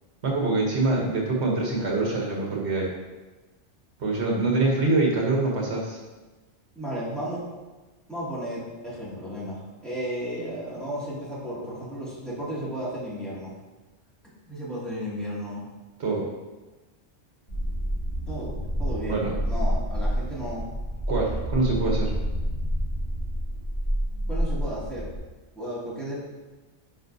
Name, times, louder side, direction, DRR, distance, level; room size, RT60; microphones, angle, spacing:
voice 1, 0.2-2.9 4.0-6.0 16.0-16.3 19.0-19.3 21.1-22.2, right 2 dB, 70° right, -1 dB, 1.3 m, -24 dB
voice 2, 6.8-7.4 8.1-13.5 14.5-15.6 18.3-19.2 19.4-20.7 24.3-25.1 25.6-26.2, equal, ahead, -9 dB, 2.2 m, -34 dB
sound 1, 17.5-25.2, equal, 35° left, 2.0 m, -28 dB
9.8 x 5.2 x 2.7 m, 1.2 s
omnidirectional pair, 1.2 m